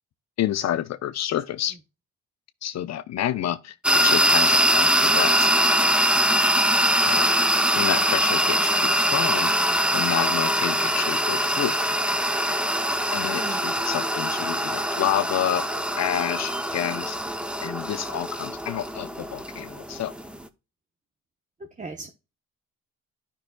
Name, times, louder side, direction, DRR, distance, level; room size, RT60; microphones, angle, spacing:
voice 1, 0.4-1.8 2.6-5.5 7.1-7.3 7.8-9.5 9.9-11.8 13.1-17.2 17.6-20.1, left 11 dB, 60° left, 0.6 m, -29 dB
sound 1, 3.8-20.5, equal, 5° right, 0.6 m, -23 dB
voice 2, 21.8-22.1, right 3 dB, 25° right, 0.9 m, -37 dB
12.0 x 5.5 x 2.2 m
cardioid pair, 90°, 30 cm